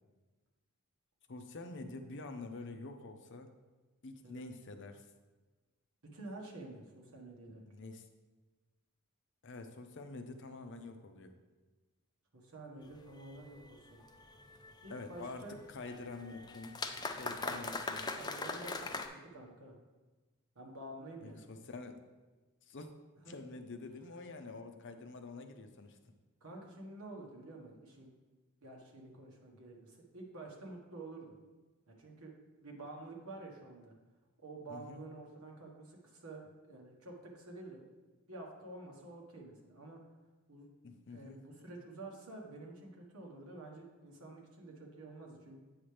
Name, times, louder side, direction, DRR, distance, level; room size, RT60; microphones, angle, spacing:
voice 1, 1.3-3.5 4.0-5.1 7.7-8.1 9.4-11.3 14.9-15.4 15.7-16.8 17.1-18.1 21.2-22.0 22.7-22.9 23.3-26.0 34.7-35.0 40.8-41.4, left 3 dB, 55° left, 6 dB, 0.6 m, -47 dB
voice 2, 6.0-7.7 12.3-14.0 14.8-15.6 17.4-17.6 18.1-19.8 20.5-21.5 23.2-23.4 26.4-28.1 28.6-31.4 31.9-32.3 32.6-33.9 34.4-37.9 38.3-40.0 40.5-40.7 41.1-45.6, right 2 dB, 80° right, -1 dB, 1.4 m, -49 dB
sound 1, 12.8-19.1, left 3 dB, 20° left, 0.4 m, -43 dB
8.7 x 5.8 x 3.3 m, 1.2 s
head